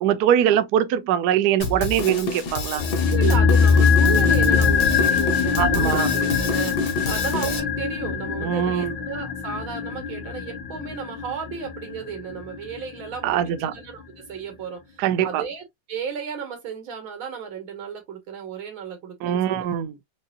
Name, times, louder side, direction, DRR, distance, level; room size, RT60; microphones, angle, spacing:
voice 1, 0.0-2.8 5.6-6.1 8.4-9.0 13.2-13.7 15.0-15.4 19.2-19.9, right 10 dB, 70° right, 1.0 m, -22 dB
Drum kit, 1.6-7.6, left 3 dB, 60° left, 1.6 m, -29 dB
sound 1, 2.8-13.0 13.3-13.4, left 6 dB, 85° left, 1.8 m, -22 dB
voice 2, 3.1-19.7, right 7 dB, 90° right, 2.3 m, -34 dB
5.3 x 2.6 x 2.5 m
omnidirectional pair, 2.2 m